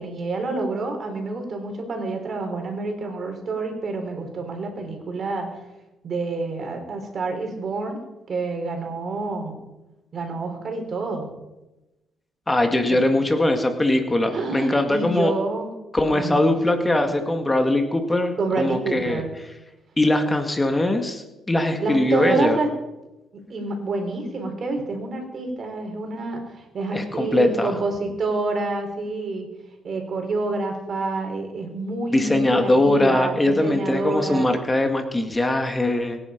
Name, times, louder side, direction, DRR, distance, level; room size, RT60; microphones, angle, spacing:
voice 1, 0.0-5.5 6.0-8.0 8.3-9.5 10.1-11.3 12.9-13.0 14.3-15.7 16.1-17.1 18.4-19.3 21.8-22.7 23.3-29.5 29.8-34.5, right 3 dB, 50° right, 4 dB, 4.3 m, -28 dB
voice 2, 12.5-15.3 15.9-19.2 20.0-22.6 26.9-27.7 32.1-36.2, left 1 dB, 15° left, 5 dB, 2.0 m, -21 dB
23.0 x 10.5 x 5.3 m, 1.0 s
cardioid pair, 90°, 0 cm